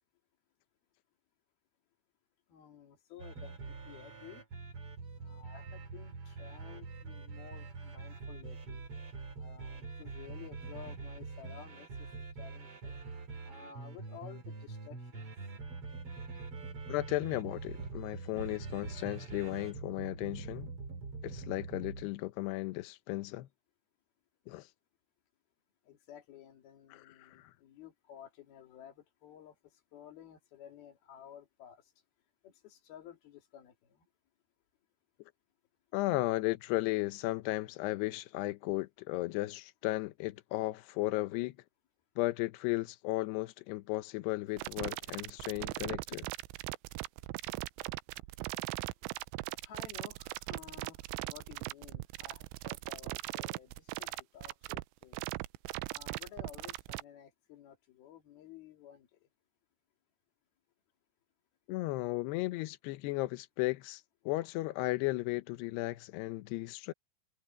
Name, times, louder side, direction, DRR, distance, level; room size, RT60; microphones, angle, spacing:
voice 1, 2.5-4.4 5.2-8.8 9.4-12.1 12.4-13.0 13.4-15.3 25.8-31.9 32.4-34.1 49.6-55.2 55.9-59.2, left 9 dB, 55° left, 4.0 m, -53 dB
sound 1, 3.2-22.1, right 4 dB, 35° right, 2.9 m, -44 dB
voice 2, 16.9-20.7 21.2-23.5 24.5-24.7 26.9-27.5 35.9-41.5 42.2-46.3 61.7-66.9, left 19 dB, 80° left, 2.4 m, -35 dB
sound 2, 44.6-57.0, right 21 dB, 90° right, 3.2 m, -39 dB
omnidirectional pair, 5.6 m